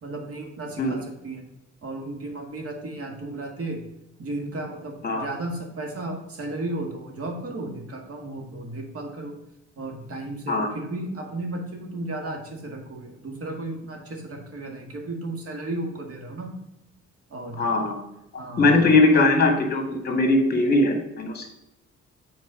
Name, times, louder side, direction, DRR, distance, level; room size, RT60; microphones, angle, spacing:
voice 1, 0.0-1.4 1.8-3.8 4.2-9.4 9.8-16.5 17.3-17.6 18.4-18.9, right 2 dB, 50° right, 2 dB, 1.9 m, -34 dB
voice 2, 17.6-18.0 18.6-21.5, left 2 dB, 30° left, 3 dB, 2.1 m, -20 dB
7.1 x 4.6 x 5.1 m, 0.88 s
cardioid pair, 90°, 30 cm